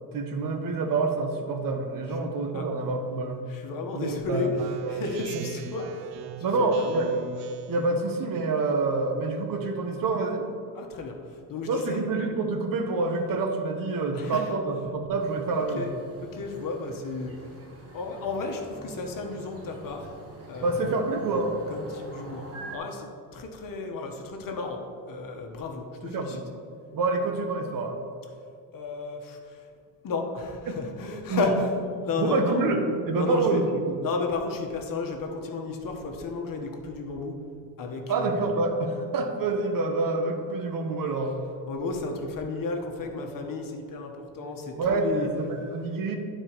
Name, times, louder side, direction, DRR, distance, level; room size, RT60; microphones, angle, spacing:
voice 1, 0.1-3.4 3.9-4.5 6.4-7.1 7.7-10.5 11.7-15.8 20.6-21.6 26.0-26.4 26.9-28.0 30.7-30.8 31.3-31.6 32.2-34.0 38.1-41.4 44.8-46.2, right 3 dB, 55° right, 5 dB, 1.0 m, -27 dB
voice 2, 3.5-6.1 6.4-6.9 10.7-12.1 14.1-14.5 15.5-15.9 16.2-17.3 17.9-20.1 20.5-20.9 21.7-22.5 22.7-26.4 28.7-29.7 30.0-32.6 33.1-33.6 34.0-37.4 37.8-38.5 41.7-45.3, left 3 dB, 55° left, 3 dB, 1.2 m, -33 dB
Speech synthesizer, 4.6-7.9, right 6 dB, 75° right, 0.5 m, -39 dB
sound 1, 15.2-22.8, right 1 dB, 35° right, 1.3 m, -45 dB
11.5 x 4.5 x 3.0 m, 2.4 s
cardioid pair, 90°, 39 cm